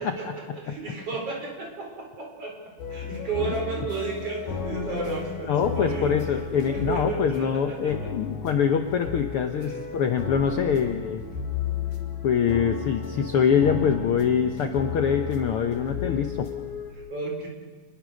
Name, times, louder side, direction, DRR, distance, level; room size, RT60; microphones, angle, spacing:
voice 1, 0.0-8.1 9.6-9.8 16.9-17.5, right 3 dB, 45° right, 0 dB, 5.5 m, -33 dB
sound 1, 2.8-16.9, left 6 dB, 80° left, 4.4 m, -34 dB
voice 2, 5.5-11.2 12.2-16.5, left 7 dB, 60° left, 6 dB, 1.5 m, -24 dB
27.5 x 21.0 x 6.5 m, 1.4 s
omnidirectional pair, 3.7 m